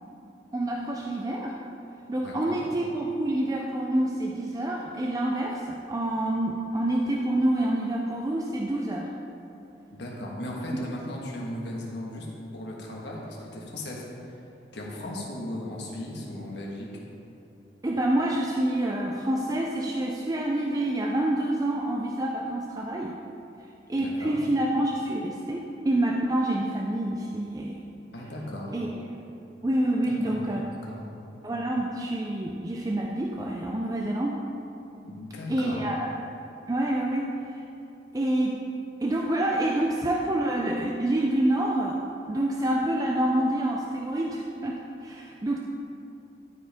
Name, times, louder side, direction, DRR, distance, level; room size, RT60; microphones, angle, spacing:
voice 1, 0.5-1.6 2.1-9.1 17.8-23.2 23.9-27.8 28.7-29.0 29.6-30.6 31.4-34.4 35.5-36.2 36.7-37.6 38.1-38.6 39.0-42.0 42.3-45.6, right 1 dB, 20° right, -1 dB, 0.4 m, -27 dB
voice 2, 2.2-2.6 9.9-12.3 12.5-14.4 14.7-16.9 24.0-24.4 28.1-28.8 30.1-30.4 30.7-31.0 35.0-35.8, left 1 dB, 70° left, -3 dB, 1.4 m, -37 dB
12.5 x 4.9 x 3.5 m, 2.8 s
head